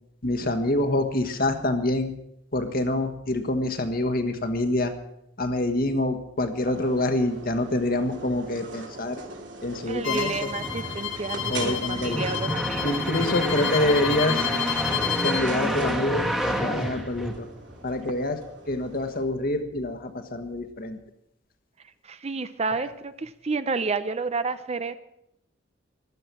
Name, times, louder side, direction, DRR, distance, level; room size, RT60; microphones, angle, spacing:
voice 1, 0.2-2.1 2.5-4.9 5.4-9.2 9.6-10.5 11.5-12.2 12.8-14.5 15.2-17.5 17.8-18.4 18.7-21.0, left 1 dB, 50° left, 7 dB, 1.6 m, -26 dB
sound 1, 6.6-19.2, right 2 dB, 70° right, 3.0 m, -41 dB
voice 2, 9.9-13.3 22.0-25.0, right 4 dB, 35° right, 12 dB, 0.6 m, -30 dB
Bowed string instrument, 10.0-15.5, left 9 dB, 75° left, 1.4 m, -30 dB
sound 2, 10.2-17.8, equal, ahead, 1.5 m, -29 dB
15.5 x 12.5 x 6.1 m, 0.79 s
head